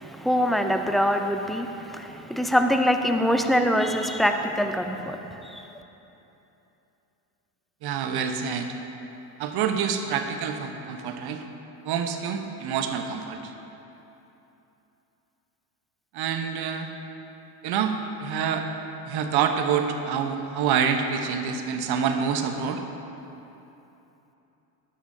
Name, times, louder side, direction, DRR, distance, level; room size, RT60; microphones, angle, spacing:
voice 1, 0.0-5.6, equal, ahead, 5 dB, 0.4 m, -24 dB
voice 2, 7.8-8.7 9.4-11.4 11.8-13.5 16.1-16.9 17.6-17.9 18.2-18.6 19.0-22.8, right 7 dB, 50° right, 5 dB, 1.1 m, -27 dB
13.0 x 10.5 x 2.8 m, 3.0 s
supercardioid pair, 90°, 48 cm